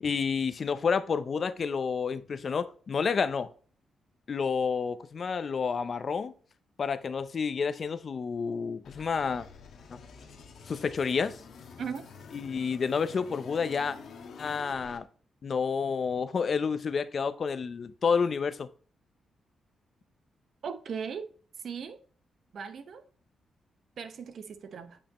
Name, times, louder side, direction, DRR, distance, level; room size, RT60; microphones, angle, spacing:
voice 1, 0.0-3.5 4.3-6.3 6.8-9.5 9.9-10.0 10.7-11.4 12.3-14.0 14.4-15.0 15.4-18.7, left 5 dB, 45° left, 0.5 m, -29 dB
sound 1, 8.8-15.0, left 5 dB, 70° left, 1.4 m, -48 dB
voice 2, 20.6-21.3 21.6-22.0 22.5-23.0 24.0-25.0, right 6 dB, 60° right, 0.9 m, -38 dB
8.6 x 5.4 x 3.0 m
cardioid pair, 120°, 0 cm